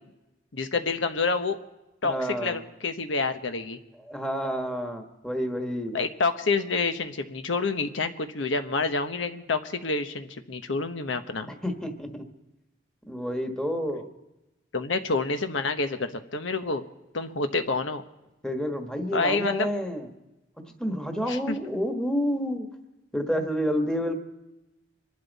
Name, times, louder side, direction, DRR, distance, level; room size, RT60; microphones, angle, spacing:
voice 1, 0.5-1.6 2.0-3.8 5.9-11.5 14.7-16.8 17.1-18.0 19.1-19.7 21.3-21.6, left 3 dB, 90° left, 8 dB, 1.1 m, -28 dB
voice 2, 2.0-2.6 4.1-6.0 11.6-12.2 13.1-14.1 18.4-20.1 20.8-22.7 23.1-24.1, equal, 5° left, 4 dB, 1.4 m, -29 dB
26.0 x 11.5 x 4.1 m, 0.99 s
head